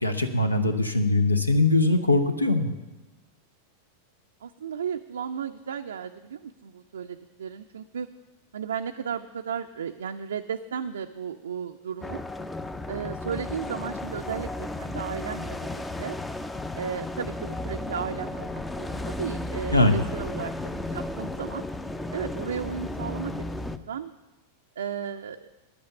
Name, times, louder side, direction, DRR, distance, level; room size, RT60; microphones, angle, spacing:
voice 1, 0.0-2.7 19.7-20.0, left 2 dB, 85° left, 8 dB, 0.7 m, -21 dB
voice 2, 4.4-8.1 8.5-12.2 12.9-16.2 16.7-21.6 22.1-23.4 23.7-24.1 24.8-25.4, right 7 dB, 65° right, 5 dB, 0.4 m, -34 dB
sound 1, 12.0-23.8, left 2 dB, 10° left, 0.5 m, -34 dB
10.5 x 8.7 x 6.7 m, 1.1 s
figure-of-eight pair, 90°, 0 cm